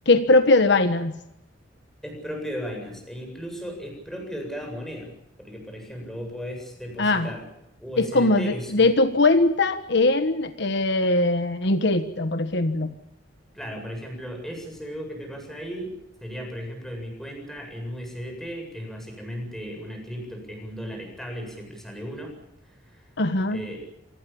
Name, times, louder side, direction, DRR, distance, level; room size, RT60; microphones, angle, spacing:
voice 1, 0.0-1.1 7.0-7.3 8.0-12.9 23.2-23.6, left 2 dB, 65° left, 9 dB, 1.4 m, -21 dB
voice 2, 2.0-5.1 5.4-7.4 7.8-8.9 13.5-15.9 16.2-22.3 22.8-23.1 23.5-23.8, equal, ahead, 3 dB, 7.7 m, -36 dB
27.0 x 19.0 x 7.2 m, 0.85 s
head